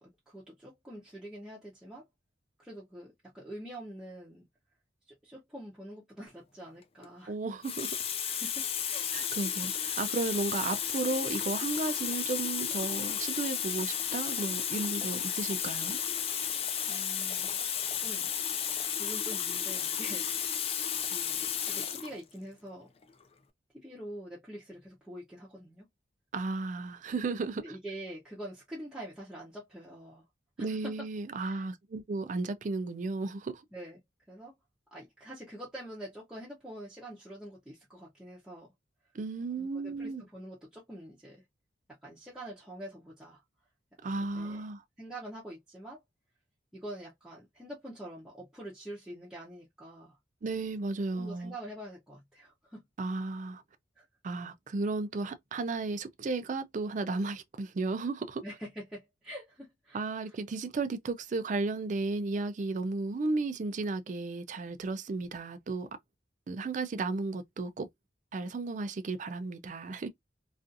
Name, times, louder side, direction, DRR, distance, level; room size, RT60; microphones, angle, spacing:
voice 1, 0.0-2.1 2.6-4.4 5.1-7.3 8.2-9.1 16.9-17.5 18.0-18.3 18.9-20.6 21.1-22.9 23.7-25.9 27.6-30.2 30.6-31.0 31.4-31.7 33.7-34.0 34.3-34.5 34.9-38.7 39.6-41.4 42.0-43.4 44.1-44.6 45.0-46.0 46.7-50.2 51.1-52.8 54.0-54.1 58.4-60.0 60.2-60.4, right 1 dB, 5° right, 0.7 m, -45 dB
Water tap faucet, 6.8-7.1 7.6-22.1 23.0-23.2, left 8 dB, 30° left, 0.3 m, -33 dB
voice 2, 7.3-8.0 9.1-16.0 26.3-27.6 30.6-33.6 39.1-40.2 44.0-44.8 50.4-51.5 53.0-53.6 54.2-58.4 59.9-65.9 66.5-67.9 68.3-70.1, right 3 dB, 45° right, 0.4 m, -34 dB
2.5 x 2.4 x 2.5 m
head